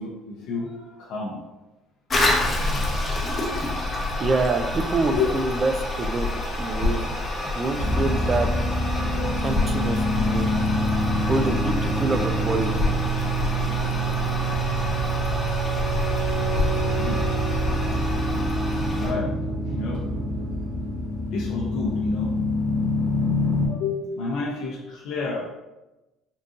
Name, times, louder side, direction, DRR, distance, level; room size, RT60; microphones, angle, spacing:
voice 1, 0.0-1.4 5.1-5.3 9.2-9.3 17.0-17.2 18.9-19.3 19.7-20.0 21.3-22.3 23.7-25.5, left 4 dB, 75° left, -3 dB, 0.6 m, -30 dB
Toilet flush, 2.1-19.1, left 2 dB, 25° left, 0.6 m, -28 dB
voice 2, 4.2-5.7 6.0-6.3 6.6-7.0 7.5-8.5 9.4-10.6 11.3-12.7, right 3 dB, 30° right, 7 dB, 0.3 m, -26 dB
sound 1, 7.8-23.7, right 1 dB, 75° right, 1.5 m, -26 dB
3.8 x 2.6 x 2.4 m, 1.0 s
cardioid pair, 120°, 0 cm